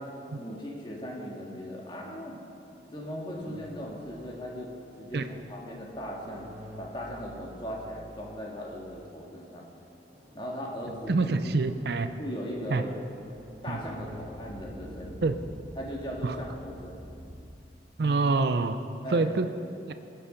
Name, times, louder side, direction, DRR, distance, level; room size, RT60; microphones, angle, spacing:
voice 1, 0.0-2.4 2.9-6.5 6.8-9.6 10.3-11.5 12.2-12.9 13.6-15.3 15.8-17.1 19.0-19.3, equal, 25° left, -2 dB, 1.8 m, -38 dB
sound 1, 2.4-9.1 9.7-9.8 10.1-17.4, equal, 30° right, 1.9 m, -48 dB
voice 2, 11.1-12.1 12.7-12.8 13.7-13.8 15.2-15.4 16.2-16.4 18.0-18.8 19.1-19.5 19.9-20.0, right 3 dB, 60° right, 9 dB, 0.5 m, -26 dB
18.5 x 6.9 x 5.1 m, 2.5 s
head